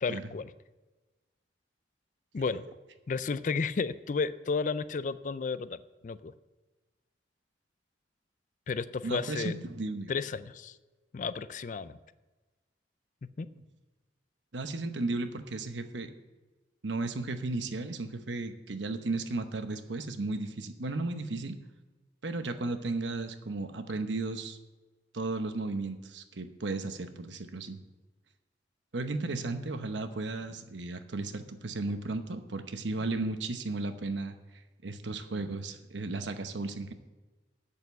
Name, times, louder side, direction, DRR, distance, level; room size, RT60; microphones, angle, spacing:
voice 1, 0.0-0.5 2.3-2.7 3.1-6.3 8.7-9.5 10.1-10.8 11.1-12.0 13.2-13.5, left 4 dB, 45° left, 15 dB, 0.4 m, -32 dB
voice 2, 9.0-10.1 13.5-13.6 14.5-16.1 16.8-21.6 22.2-24.6 25.1-27.8 28.9-34.4 34.8-36.9, right 2 dB, 80° right, 8 dB, 0.9 m, -34 dB
8.3 x 6.7 x 7.9 m, 1.2 s
head